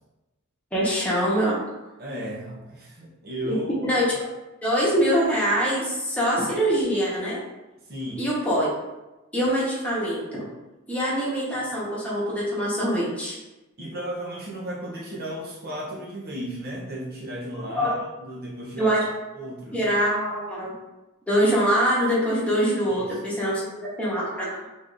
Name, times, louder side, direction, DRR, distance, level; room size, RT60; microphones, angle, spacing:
voice 1, 0.7-1.6 3.4-4.1 4.6-7.4 8.2-8.7 9.3-10.4 10.9-13.4 17.7-18.0 18.8-19.1 19.7-20.7 21.3-24.7, equal, 5° left, -7 dB, 1.1 m, -24 dB
voice 2, 2.0-3.9 7.9-8.3 13.8-18.9 19.3-19.8 22.9-23.0, right 1 dB, 45° right, -4 dB, 0.8 m, -34 dB
4.9 x 3.6 x 2.6 m, 1.0 s
head